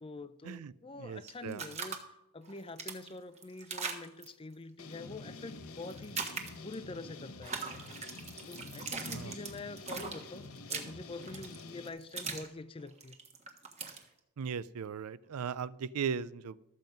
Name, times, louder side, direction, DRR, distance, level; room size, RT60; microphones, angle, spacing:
voice 1, 0.0-6.2 6.6-7.6 8.5-13.2, left 2 dB, 25° left, 13 dB, 0.5 m, -46 dB
voice 2, 1.0-1.6 9.1-9.3 14.4-16.6, right 6 dB, 85° right, 19 dB, 0.4 m, -37 dB
sound 1, 1.3-2.0 2.4-4.3 5.9-6.7 7.4-12.5 12.8-14.0, right 5 dB, 30° right, 1.4 m, -40 dB
sound 2, 4.8-11.9, left 3 dB, 75° left, 0.9 m, -49 dB
sound 3, 4.9-6.1 8.5-9.5, left 2 dB, 45° left, 1.0 m, -51 dB
13.0 x 7.5 x 5.2 m, 0.87 s
head